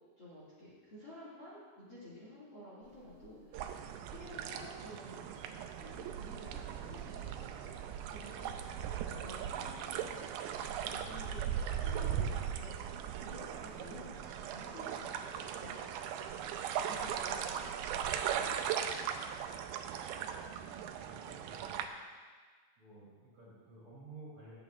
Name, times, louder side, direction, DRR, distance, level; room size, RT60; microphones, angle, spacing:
voice 1, 0.2-3.8 4.1-7.7 8.1-8.8 9.1-10.0 10.8-16.1 16.8-18.0 18.3-18.5, left 1 dB, 35° left, -8 dB, 2.2 m, -52 dB
sound 1, 2.8-21.1, right 4 dB, 55° right, 2.5 m, -57 dB
sound 2, 3.5-21.8, right 9 dB, 80° right, 2.4 m, -38 dB
voice 2, 20.4-21.9 22.8-24.6, right 2 dB, 40° right, -7 dB, 3.1 m, -54 dB
18.5 x 8.6 x 2.4 m, 1.5 s
omnidirectional pair, 4.5 m